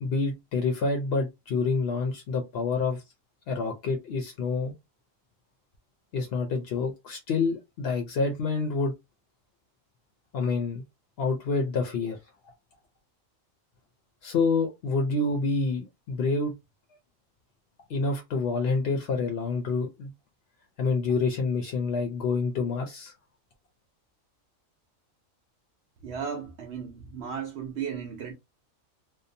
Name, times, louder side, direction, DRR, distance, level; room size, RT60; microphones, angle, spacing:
voice 1, 0.0-3.0 3.5-4.7 6.1-8.9 10.3-10.8 11.2-12.2 14.2-16.5 17.9-20.1 20.8-23.1, left 4 dB, 60° left, 0.7 m, -27 dB
voice 2, 26.0-28.3, right 7 dB, 65° right, 0.7 m, -35 dB
2.7 x 2.0 x 2.6 m
omnidirectional pair, 1.4 m